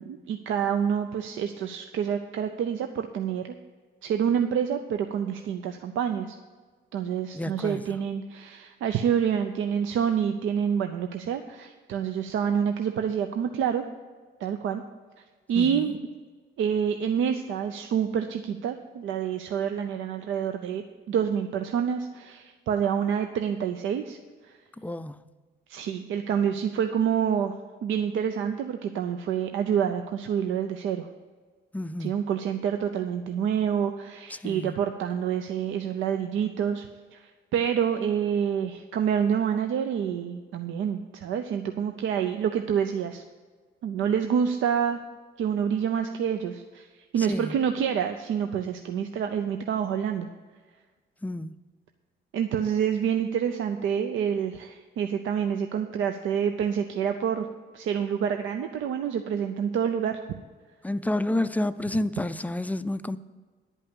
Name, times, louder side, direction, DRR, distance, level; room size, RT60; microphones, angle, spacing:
voice 1, 0.0-3.5 4.0-6.4 6.9-13.8 14.4-14.8 15.5-16.0 16.6-24.2 24.4-24.6 25.7-27.5 27.8-31.1 32.0-36.9 37.1-43.2 43.8-45.0 45.4-50.3 52.3-57.5 57.7-60.4, right 8 dB, 75° right, 0.6 m, -27 dB
voice 2, 7.3-7.8 15.6-15.9 24.8-25.2 31.7-32.2 34.3-34.8 47.2-47.6 51.2-51.5 60.8-63.2, left 1 dB, 10° left, 0.4 m, -30 dB
10.5 x 5.5 x 8.5 m
cardioid pair, 90°, 20 cm